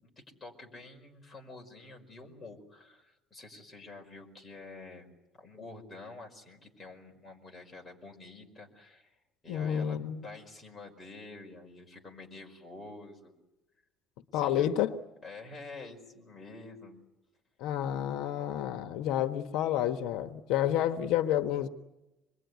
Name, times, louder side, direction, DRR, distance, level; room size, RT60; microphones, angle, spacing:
voice 1, 0.0-5.1 5.4-9.1 9.4-13.3 14.3-14.7 15.2-17.0, left 3 dB, 15° left, 0 dB, 5.0 m, -48 dB
voice 2, 9.5-10.2 14.3-14.9 17.6-21.7, left 11 dB, 75° left, 7 dB, 1.4 m, -29 dB
26.5 x 21.5 x 9.5 m, 0.97 s
cardioid pair, 175°, 0 cm